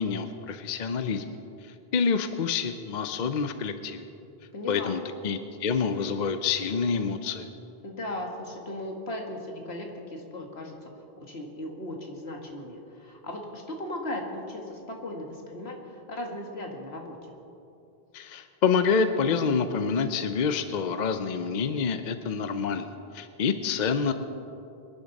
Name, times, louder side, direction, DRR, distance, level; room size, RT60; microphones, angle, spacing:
voice 1, 0.0-1.4 1.6-4.1 4.7-7.5 18.1-24.1, left 5 dB, 50° left, 9 dB, 0.7 m, -27 dB
voice 2, 4.5-5.0 7.8-17.2, left 1 dB, 70° left, 1 dB, 2.1 m, -37 dB
24.0 x 11.0 x 4.1 m, 2.8 s
omnidirectional pair, 1.1 m